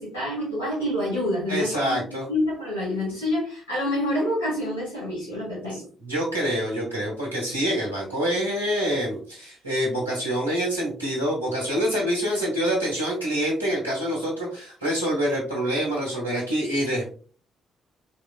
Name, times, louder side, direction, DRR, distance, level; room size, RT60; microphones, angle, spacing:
voice 1, 0.0-2.0 2.3-5.8, left 1 dB, 80° left, -10 dB, 1.5 m, -27 dB
voice 2, 1.5-2.3 5.7-17.1, equal, 90° right, -5 dB, 1.0 m, -26 dB
3.6 x 3.1 x 2.2 m, 0.41 s
figure-of-eight pair, 40°, 0 cm